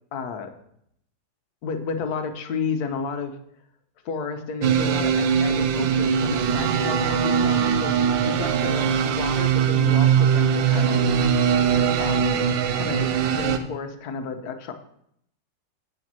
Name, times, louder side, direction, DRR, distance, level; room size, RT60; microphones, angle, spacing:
voice 1, 0.1-0.5 1.6-3.4 4.0-11.1 12.0-12.5 12.7-14.7, left 5 dB, 60° left, 7 dB, 1.4 m, -32 dB
sound 1, 4.6-13.6, right 7 dB, 85° right, 1.5 m, -21 dB
9.0 x 5.2 x 7.5 m, 0.71 s
omnidirectional pair, 2.0 m